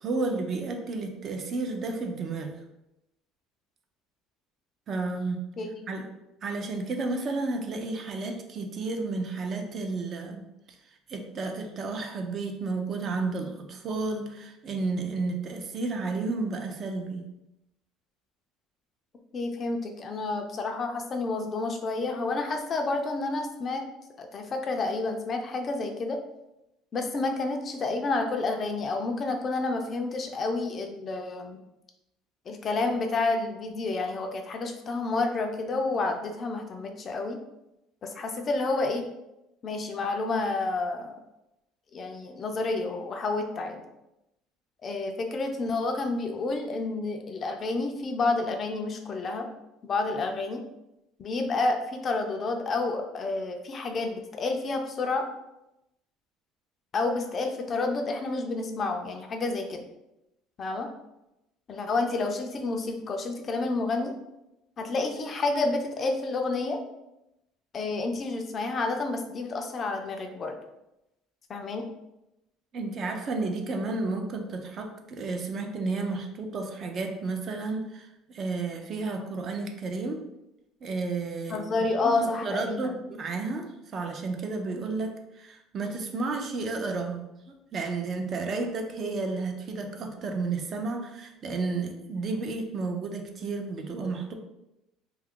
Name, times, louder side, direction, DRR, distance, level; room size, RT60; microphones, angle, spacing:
voice 1, 0.0-2.6 4.9-5.4 5.9-6.1 6.4-10.5 11.1-17.3 72.7-80.2 80.8-81.6 82.0-82.1 82.4-87.2 87.7-94.3, right 3 dB, 35° right, 4 dB, 0.4 m, -32 dB
voice 2, 19.3-23.8 24.2-26.2 26.9-31.6 32.5-37.4 38.0-39.0 39.6-41.2 41.9-43.8 44.8-49.5 49.8-50.6 51.2-55.3 56.9-59.8 60.6-60.9 61.7-64.1 64.8-66.8 67.7-70.6 71.5-71.8 81.5-83.0, left 3 dB, 30° left, 4 dB, 0.4 m, -29 dB
2.7 x 2.3 x 3.6 m, 0.90 s
cardioid pair, 140°, 0 cm